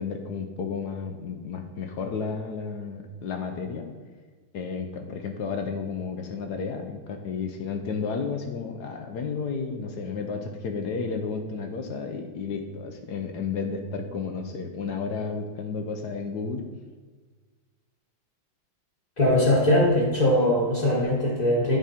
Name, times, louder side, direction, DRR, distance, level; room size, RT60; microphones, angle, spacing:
voice 1, 0.0-3.9 4.5-16.7, left 5 dB, 65° left, 5 dB, 1.1 m, -32 dB
voice 2, 19.2-21.8, left 1 dB, 20° left, -7 dB, 1.3 m, -21 dB
9.8 x 4.9 x 4.3 m, 1.4 s
omnidirectional pair, 2.2 m